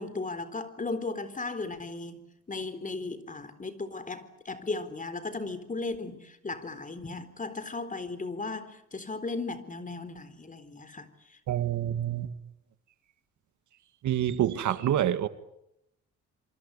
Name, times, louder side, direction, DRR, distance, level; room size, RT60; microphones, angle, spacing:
voice 1, 0.0-2.2 2.5-11.4, left 3 dB, 25° left, 4.0 m, -36 dB
voice 2, 11.5-12.3 14.0-15.3, right 11 dB, 70° right, 1.8 m, -27 dB
27.5 x 24.5 x 8.3 m
cardioid pair, 90°, 30 cm